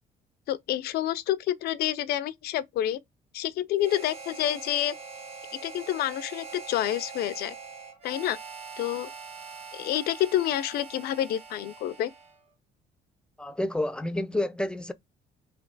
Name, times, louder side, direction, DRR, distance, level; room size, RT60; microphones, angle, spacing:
voice 1, 0.5-3.0 3.3-5.0 5.6-7.6 8.0-8.4 8.8-9.1 9.7-12.1, left 12 dB, 70° left, 0.4 m, -28 dB
Harmonica, 3.8-12.4, right 5 dB, 35° right, 1.0 m, -43 dB
voice 2, 13.4-14.9, left 1 dB, 5° left, 0.4 m, -29 dB
3.3 x 2.9 x 3.8 m
cardioid pair, 110°, 17 cm